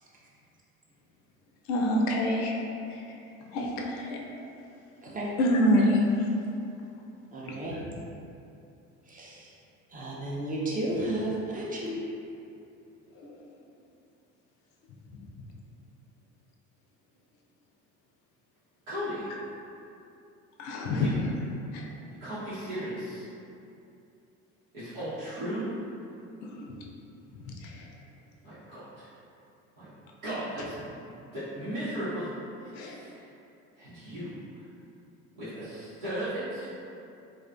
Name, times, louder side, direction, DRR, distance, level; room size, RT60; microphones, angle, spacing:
voice 1, 1.7-2.6 2.9-3.0 3.5-4.2 5.4-6.3 7.7-7.8 13.2-13.3 20.6-21.1 21.7-21.9 26.4-26.7 27.5-27.8 32.7-32.9, left 1 dB, 65° left, -1 dB, 0.5 m, -26 dB
voice 2, 7.3-7.7 9.1-9.5 9.9-12.0, right 1 dB, 20° right, -5 dB, 0.6 m, -33 dB
voice 3, 18.9-19.3 21.0-21.1 22.1-23.2 24.7-25.8 28.4-29.1 29.8-29.9 30.2-31.1 31.3-32.3 32.6-33.2 33.8-34.6 35.3-36.7, right 1 dB, 80° right, -15 dB, 0.9 m, -36 dB
2.4 x 2.3 x 2.4 m, 2.7 s
hypercardioid pair, 60°, 40 cm